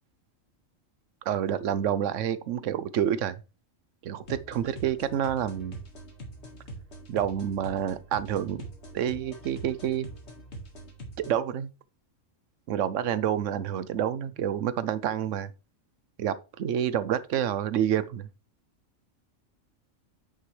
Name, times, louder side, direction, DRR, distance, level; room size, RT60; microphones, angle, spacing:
voice 1, 1.3-3.4 4.0-5.8 7.1-8.6 8.9-10.1 11.3-11.7 12.7-15.5 16.2-18.3, right 10 dB, 70° right, 1.0 m, -28 dB
sound 1, 4.2-11.3, right 1 dB, 55° left, 2.0 m, -44 dB
9.5 x 5.9 x 3.2 m
omnidirectional pair, 1.4 m